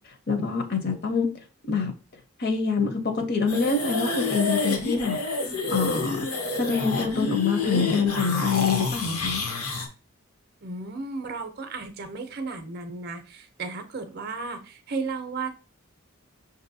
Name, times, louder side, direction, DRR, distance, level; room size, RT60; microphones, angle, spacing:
voice 1, 0.3-1.3 1.7-1.9 2.4-5.2 5.7-6.2 6.6-9.4, left 5 dB, 45° left, 0.6 m, -25 dB
sound 1, 3.5-9.9, left 3 dB, 80° left, 0.9 m, -28 dB
voice 2, 10.6-15.5, right 4 dB, 45° right, 0.5 m, -34 dB
5.9 x 2.7 x 2.6 m
head